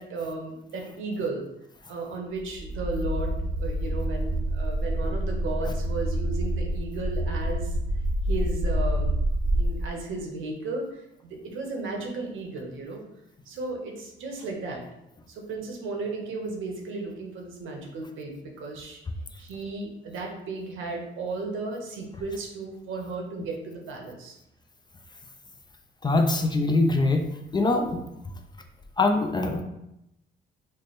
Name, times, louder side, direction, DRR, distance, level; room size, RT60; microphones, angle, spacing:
voice 1, 0.0-1.4 1.9-7.7 8.3-9.2 9.5-13.0 13.5-14.8 15.3-19.0 19.4-24.4, right 3 dB, 80° right, 1 dB, 0.8 m, -34 dB
sound 1, 2.4-9.7, right 1 dB, 45° right, 0.7 m, -27 dB
voice 2, 26.0-27.2 27.5-28.0 29.0-29.6, left 2 dB, 20° left, 5 dB, 0.4 m, -23 dB
3.2 x 2.1 x 4.1 m, 0.85 s
cardioid pair, 90°, 20 cm